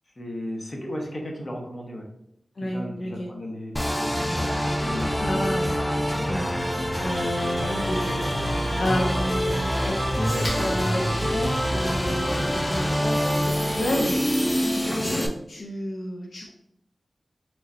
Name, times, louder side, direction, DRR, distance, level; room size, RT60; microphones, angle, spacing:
voice 1, 0.2-2.0 2.6-4.4 4.8-5.6 6.4-6.6, equal, 45° left, 0 dB, 0.9 m, -35 dB
voice 2, 2.6-3.3 5.2-5.9 6.3-6.5 7.0-14.2 15.0-16.5, equal, 85° left, -1 dB, 0.5 m, -31 dB
sound 1, 3.8-15.3, equal, 10° left, 0.5 m, -26 dB
sound 2, 4.3-14.1, right 1 dB, 55° right, 0.4 m, -39 dB
Domestic sounds home sounds, 7.0-15.0, left 1 dB, 70° left, 1.2 m, -38 dB
3.9 x 3.1 x 2.6 m, 0.76 s
cardioid pair, 55°, 0 cm